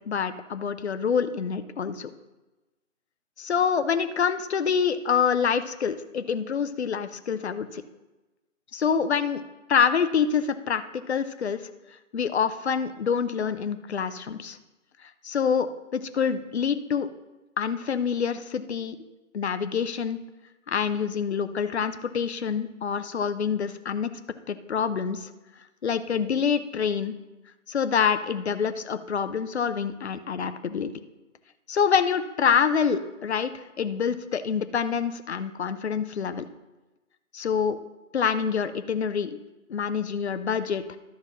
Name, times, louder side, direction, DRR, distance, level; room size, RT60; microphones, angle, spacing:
voice 1, 0.1-2.1 3.4-7.8 8.7-9.4 9.7-11.6 12.1-14.6 15.2-17.1 17.6-19.0 19.3-20.2 20.7-24.1 24.5-25.3 25.8-27.1 27.7-30.9 31.7-36.5 37.3-37.8 38.1-39.4 39.7-40.8, left 6 dB, 55° left, 11 dB, 0.7 m, -26 dB
12.0 x 4.2 x 6.0 m, 1.1 s
figure-of-eight pair, 150°, 39 cm